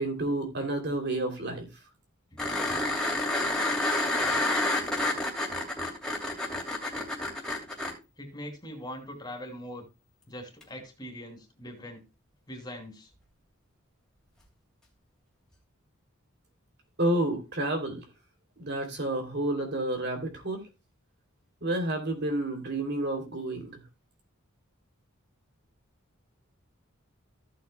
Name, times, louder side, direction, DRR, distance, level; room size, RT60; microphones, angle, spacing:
voice 1, 0.0-1.7 17.0-18.0 18.6-20.6 21.6-23.8, right 1 dB, 55° right, 3.0 m, -30 dB
sound 1, 2.4-7.9 10.6-10.7, left 2 dB, 5° left, 2.7 m, -29 dB
voice 2, 8.2-9.9 10.3-12.0 12.5-13.1, equal, 20° left, 2.8 m, -42 dB
15.0 x 8.3 x 2.2 m
head